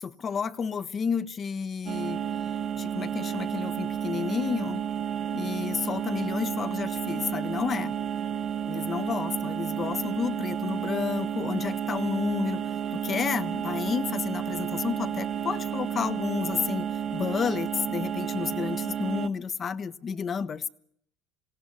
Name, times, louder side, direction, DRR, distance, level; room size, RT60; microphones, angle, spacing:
voice 1, 0.0-2.2 2.7-4.8 5.3-7.9 8.7-12.6 12.9-20.7, left 6 dB, 35° left, 14 dB, 0.9 m, -31 dB
sound 1, 1.9-19.3, right 9 dB, 45° right, 0.9 m, -31 dB
21.0 x 17.0 x 9.6 m, 0.72 s
hypercardioid pair, 75°, 0 cm